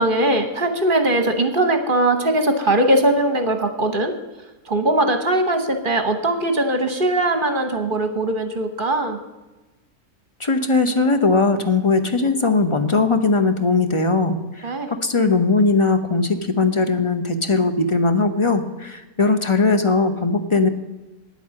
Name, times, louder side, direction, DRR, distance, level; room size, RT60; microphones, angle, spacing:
voice 1, 0.0-4.1 4.6-9.2 14.6-14.9, right 1 dB, 40° right, 6 dB, 1.2 m, -20 dB
voice 2, 10.4-20.7, left 3 dB, 25° left, 8 dB, 0.7 m, -19 dB
10.0 x 8.4 x 7.7 m, 1.1 s
omnidirectional pair, 1.6 m